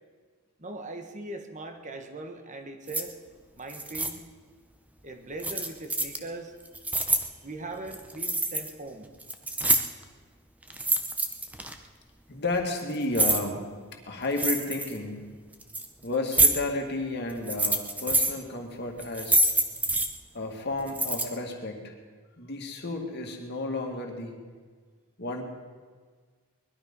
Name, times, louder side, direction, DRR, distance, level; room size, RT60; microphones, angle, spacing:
voice 1, 0.6-3.1 3.5-4.2 5.0-6.5 7.4-9.1, right 2 dB, 35° right, 6 dB, 1.3 m, -40 dB
Bunch of Keys on a Keychain, 2.9-3.0 3.7-4.1 5.4-6.2 6.6-7.2 7.9-8.7 9.0-10.0 10.7-11.7 12.5-13.4 14.3-15.0 15.5-15.9 16.3-16.5 17.3-18.3 19.0-20.1 20.9-21.2, right 2 dB, 5° right, 0.8 m, -26 dB
voice 2, 12.3-13.7 14.1-15.3 16.0-19.4 20.3-21.9 22.4-24.4 25.2-25.4, left 2 dB, 50° left, 2 dB, 2.2 m, -32 dB
20.5 x 12.5 x 5.5 m, 1.5 s
head